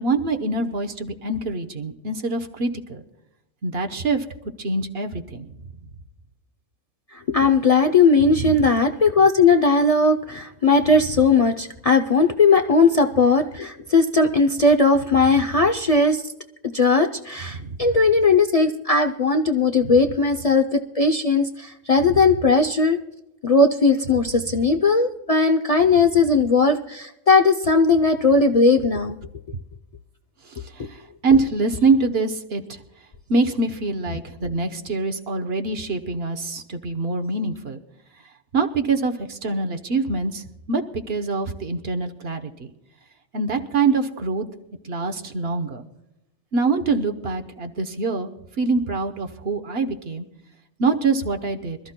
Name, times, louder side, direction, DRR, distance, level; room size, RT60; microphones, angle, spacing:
voice 1, 0.0-3.0 3.6-4.2 4.6-5.5 8.2-8.7 17.5-17.8 19.8-19.9 22.1-22.2 30.5-32.8 33.3-37.8 38.5-42.7 43.3-44.5 44.8-45.8 46.5-48.3 48.6-50.2 50.8-51.8, right 3 dB, 60° right, 6 dB, 1.2 m, -24 dB
voice 2, 7.1-16.2 16.7-23.0 23.4-29.2, left 3 dB, 40° left, 5 dB, 0.5 m, -18 dB
26.0 x 13.5 x 2.2 m, 0.90 s
omnidirectional pair, 1.2 m